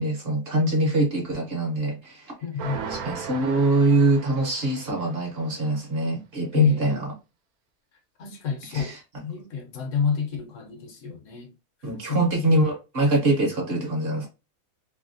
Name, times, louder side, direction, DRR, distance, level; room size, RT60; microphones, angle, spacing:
voice 1, 0.0-2.3 2.9-7.1 8.7-9.0 11.8-14.3, right 2 dB, 50° right, 0.9 m, -24 dB
voice 2, 2.4-2.9 6.5-7.0 8.2-8.9 9.2-11.5 12.1-12.5, left 7 dB, 70° left, 0.9 m, -28 dB
sound 1, 2.6-5.3, right 6 dB, 85° right, 1.1 m, -37 dB
2.8 x 2.7 x 2.6 m
omnidirectional pair, 1.5 m